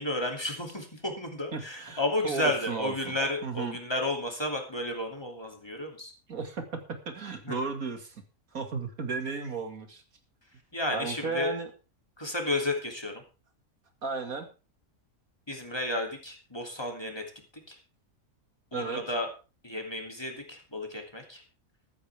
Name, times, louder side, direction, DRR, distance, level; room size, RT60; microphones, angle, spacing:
voice 1, 0.0-6.1 7.4-7.6 10.7-11.6 12.2-13.2 15.5-17.2 17.7-17.8 18.7-19.3 19.6-21.4, left 1 dB, 15° left, 2 dB, 2.9 m, -32 dB
voice 2, 1.5-3.2 3.4-3.8 6.3-8.2 8.5-10.0 10.9-11.7 14.0-14.5 18.7-19.0, right 4 dB, 70° right, 6 dB, 2.7 m, -34 dB
14.0 x 14.0 x 3.5 m, 0.33 s
omnidirectional pair, 1.5 m